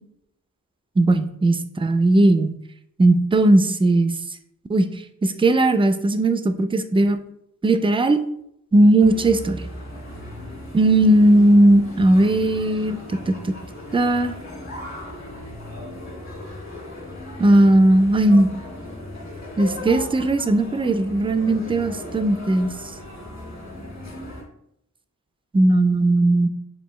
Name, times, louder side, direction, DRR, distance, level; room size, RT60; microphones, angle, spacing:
voice 1, 1.0-2.5 3.0-4.1 4.7-4.9 5.2-7.2 7.6-8.2 8.7-9.6 10.7-13.5 13.9-14.3 17.4-18.5 19.6-22.7 25.5-26.5, right 1 dB, 15° right, 9 dB, 0.3 m, -17 dB
sound 1, 9.0-24.4, left 1 dB, 50° left, 1.8 m, -37 dB
6.6 x 2.5 x 3.1 m, 0.75 s
wide cardioid pair, 80°, 34 cm